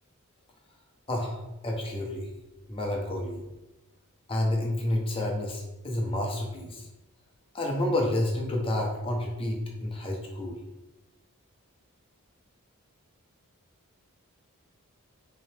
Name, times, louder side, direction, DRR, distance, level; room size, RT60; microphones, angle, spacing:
voice 1, 1.1-2.3 2.7-3.4 4.3-6.9 7.5-10.6, left 1 dB, 25° left, 0 dB, 0.7 m, -29 dB
3.8 x 2.9 x 3.3 m, 1.0 s
head